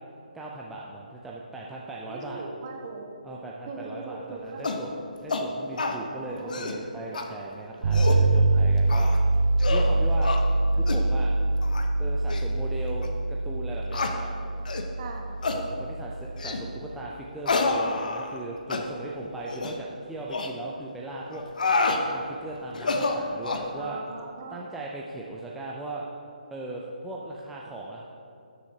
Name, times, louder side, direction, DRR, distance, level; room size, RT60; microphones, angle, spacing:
voice 1, 0.3-2.4 3.2-5.0 5.2-10.4 10.7-11.3 12.0-14.3 15.5-21.4 21.9-24.0 24.5-26.1 26.5-28.0, right 2 dB, 5° right, -4 dB, 0.5 m, -38 dB
voice 2, 2.1-3.1 3.7-5.0 6.0-6.8 8.5-8.8 15.0-15.3 18.7-19.0 22.9-23.3 23.7-24.6, right 4 dB, 40° right, 1 dB, 1.2 m, -39 dB
sound 1, 4.6-4.8 5.3-5.5 5.8-6.0 6.4-6.8 7.1-7.3 7.7-8.2 8.9-9.2 9.6-9.9 10.2-10.4 10.9-11.0 11.6-11.9 12.3-12.4 13.0-13.1 13.9-14.1 14.7-14.9 15.4-15.6 16.4-16.6 17.5-18.4 18.7-18.8 19.5-19.8 20.3-20.5 21.3-22.0 22.7-23.7, left 3 dB, 65° left, 0.9 m, -28 dB
sound 2, 7.8-16.8, right 2 dB, 55° right, 1.4 m, -24 dB
13.0 x 7.0 x 2.8 m, 2.6 s
figure-of-eight pair, 145°, 5 cm